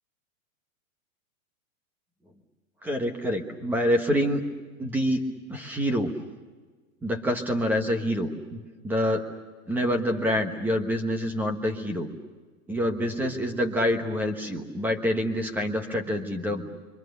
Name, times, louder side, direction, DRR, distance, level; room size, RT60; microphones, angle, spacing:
voice 1, 2.8-4.4 4.8-6.1 7.0-9.2 9.7-12.1 12.7-16.7, equal, 5° right, 5 dB, 1.2 m, -27 dB
29.5 x 24.0 x 6.7 m, 1.4 s
supercardioid pair, 175°, 41 cm